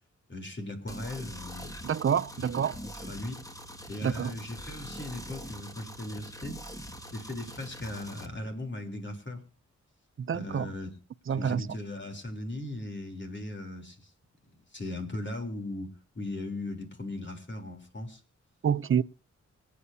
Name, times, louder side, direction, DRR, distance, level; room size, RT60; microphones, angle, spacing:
voice 1, 0.3-1.7 2.4-2.5 2.8-3.4 3.9-6.6 7.1-9.4 10.3-10.9 11.4-14.1 14.5-18.2, left 1 dB, 40° left, 3.7 m, -38 dB
sound 1, 0.9-8.3, equal, 10° left, 2.1 m, -43 dB
voice 2, 1.8-2.8 4.0-4.3 10.2-10.7 11.3-11.7 18.6-19.0, right 8 dB, 45° right, 0.6 m, -27 dB
25.5 x 8.5 x 2.8 m
cardioid pair, 60°, 30 cm